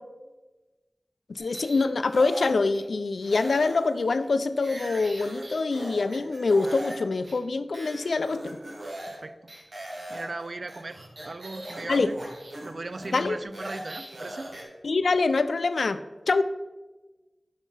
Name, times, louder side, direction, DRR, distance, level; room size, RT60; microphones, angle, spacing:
voice 1, 1.3-8.6 11.9-12.2 13.1-13.4 14.8-16.0 16.3-16.4, left 3 dB, 90° left, 12 dB, 0.3 m, -25 dB
sound 1, 1.4-2.9 3.2-7.0 7.2-7.4 7.7-9.2 9.5-14.6, right 1 dB, 80° right, 1.4 m, -40 dB
voice 2, 9.1-11.0 11.2-12.2 12.6-14.5, right 3 dB, 60° right, 13 dB, 0.3 m, -38 dB
5.7 x 4.5 x 5.4 m, 1.2 s
wide cardioid pair, 75°, 0 cm